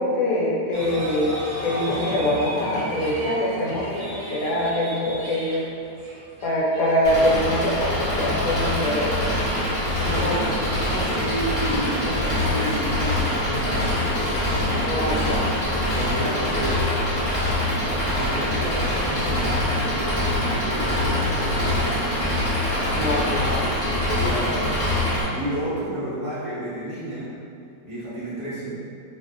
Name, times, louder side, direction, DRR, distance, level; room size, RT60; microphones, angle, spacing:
voice 1, 0.0-5.7 6.4-9.3 10.2-10.4 14.8-15.5 23.0-23.5, left 1 dB, 70° left, -5 dB, 1.0 m, -24 dB
sound 1, 0.7-8.6, right 1 dB, 75° right, 1.0 m, -35 dB
Engine, 7.0-25.2, left 1 dB, 40° left, 0.5 m, -24 dB
voice 2, 9.9-15.3 15.9-16.9 17.3-17.6 18.2-22.4 22.8-27.3 27.8-28.8, right 1 dB, 20° right, -13 dB, 0.6 m, -31 dB
2.7 x 2.0 x 2.5 m, 2.5 s
omnidirectional pair, 1.7 m